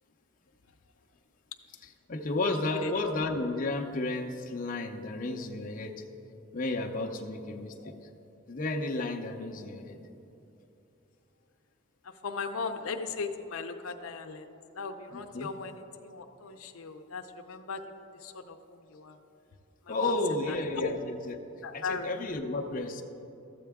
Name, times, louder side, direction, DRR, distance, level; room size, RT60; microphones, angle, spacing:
voice 1, 2.1-5.9 6.5-7.9 8.5-10.0 15.1-15.5 19.9-21.3 21.7-23.0, left 2 dB, 40° left, 3 dB, 0.6 m, -32 dB
voice 2, 2.7-3.1 7.8-7.9 12.0-14.5 14.7-17.8 18.1-19.2 19.8-20.2 20.5-21.0 21.6-22.4, left 4 dB, 90° left, 6 dB, 0.6 m, -38 dB
13.0 x 7.6 x 3.5 m, 2.8 s
head